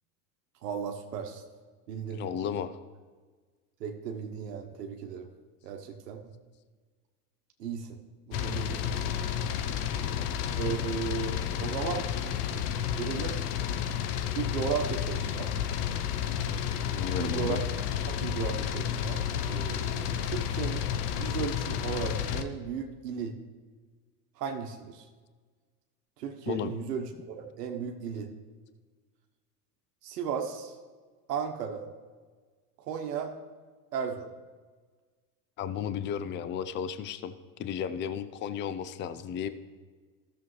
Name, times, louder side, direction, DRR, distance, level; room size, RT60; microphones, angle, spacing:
voice 1, 0.6-1.4 1.9-2.2 3.8-5.3 5.6-6.2 7.6-8.0 8.3-9.4 10.5-12.4 13.0-13.4 14.3-15.5 17.2-17.6 18.1-20.9 21.1-23.3 24.4-25.0 26.2-28.3 30.0-30.7 31.3-31.8 32.8-33.3 33.9-34.3, right 7 dB, 80° right, 3 dB, 1.1 m, -35 dB
voice 2, 2.1-2.8 10.1-10.3 16.9-17.6 26.5-26.7 35.6-37.3 37.6-39.5, left 8 dB, 25° left, 12 dB, 0.5 m, -34 dB
sound 1, 8.3-22.4, left 9 dB, 75° left, 0.8 m, -31 dB
14.5 x 6.9 x 3.2 m, 1.4 s
hypercardioid pair, 90°, 47 cm